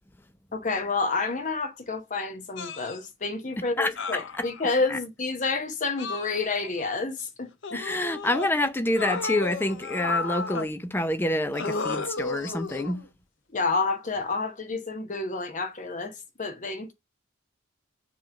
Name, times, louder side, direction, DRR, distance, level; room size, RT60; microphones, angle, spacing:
voice 1, 0.5-7.8 13.5-16.9, left 3 dB, 40° left, 1.0 m, -29 dB
sound 1, 2.6-3.0 4.0-4.9 6.0-6.8 7.6-8.5 9.0-10.7 11.5-13.1 14.2-14.4, left 4 dB, 65° left, 0.7 m, -33 dB
voice 2, 3.6-3.9 4.4-4.5 4.9-5.0 7.7-13.0, left 1 dB, 10° left, 0.5 m, -27 dB
7.3 x 3.0 x 5.7 m
head